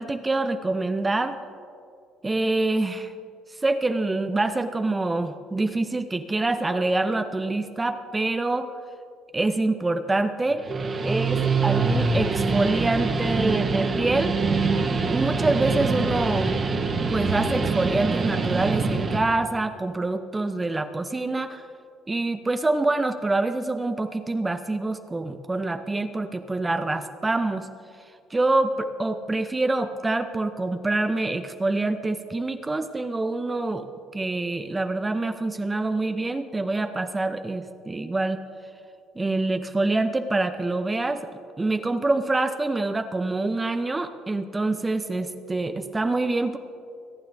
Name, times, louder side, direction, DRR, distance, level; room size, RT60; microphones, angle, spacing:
voice 1, 0.0-1.4 2.2-3.1 3.6-8.7 9.3-10.7 11.0-14.4 15.0-16.5 17.1-21.6 22.1-27.7 28.3-33.9 34.1-38.4 39.2-41.2 41.6-46.6, right 2 dB, 15° right, 8 dB, 0.6 m, -26 dB
Guitar, 10.5-19.2, right 4 dB, 35° right, 1.2 m, -24 dB
24.5 x 9.1 x 2.7 m, 2.3 s
cardioid pair, 100°, 0 cm